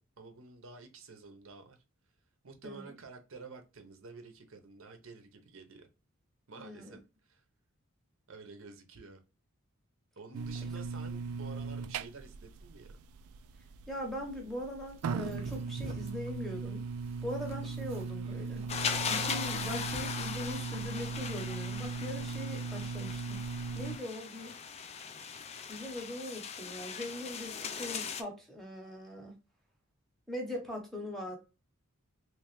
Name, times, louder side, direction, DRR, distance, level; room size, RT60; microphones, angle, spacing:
voice 1, 0.2-1.8 2.4-5.9 6.5-7.4 8.3-9.2 10.2-13.0, right 4 dB, 65° right, 0.8 m, -50 dB
voice 2, 6.6-7.0 13.9-16.8 17.2-18.7 19.1-23.4 23.7-24.6 25.7-29.3 30.3-31.4, left 1 dB, ahead, 0.8 m, -41 dB
sound 1, 10.3-24.0, right 5 dB, 85° right, 0.3 m, -38 dB
sound 2, 14.9-20.8, right 1 dB, 30° right, 0.7 m, -51 dB
sound 3, 18.7-28.2, left 6 dB, 30° left, 0.3 m, -39 dB
3.2 x 3.0 x 3.0 m
head